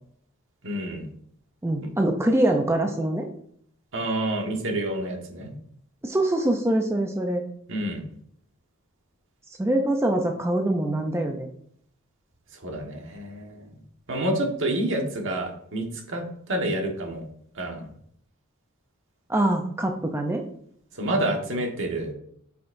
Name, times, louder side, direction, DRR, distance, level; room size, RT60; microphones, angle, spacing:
voice 1, 0.6-1.1 3.9-5.5 7.7-8.0 12.6-13.7 14.1-17.2 17.5-17.9 20.9-22.1, right 1 dB, 65° right, 2 dB, 1.4 m, -28 dB
voice 2, 1.6-3.3 6.0-7.4 9.6-11.5 19.3-20.4, right 1 dB, 10° right, 3 dB, 0.5 m, -24 dB
8.0 x 5.8 x 2.6 m, 0.66 s
head